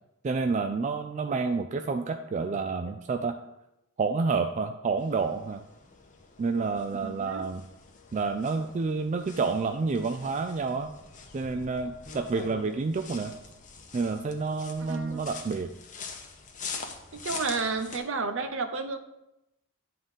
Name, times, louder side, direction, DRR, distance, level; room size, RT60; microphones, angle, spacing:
voice 1, 0.2-3.4 4.0-5.6 6.4-7.6 8.1-10.9 11.3-13.3 13.9-15.7, right 4 dB, 35° right, 7 dB, 0.3 m, -29 dB
sound 1, 5.0-18.0, left 5 dB, 35° left, 0.9 m, -44 dB
voice 2, 7.0-7.4 14.9-15.2 17.1-19.0, right 4 dB, 60° right, 9 dB, 0.7 m, -31 dB
9.8 x 3.7 x 5.4 m, 0.89 s
head